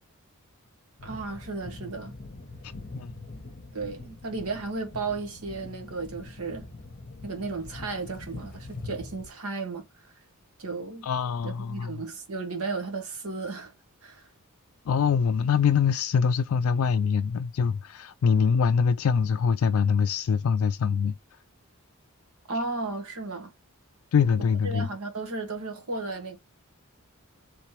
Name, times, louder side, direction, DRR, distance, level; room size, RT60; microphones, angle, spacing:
sound 1, 1.0-9.3, left 2 dB, 40° left, 0.9 m, -43 dB
voice 1, 1.0-2.1 3.7-6.7 7.2-10.1 10.6-11.1 11.4-13.7 14.0-14.3 22.5-23.5 24.6-26.4, right 3 dB, 85° right, 1.4 m, -34 dB
voice 2, 2.6-3.1 11.0-12.0 14.9-21.2 24.1-24.9, left 6 dB, 65° left, 0.3 m, -24 dB
3.3 x 3.2 x 4.4 m
head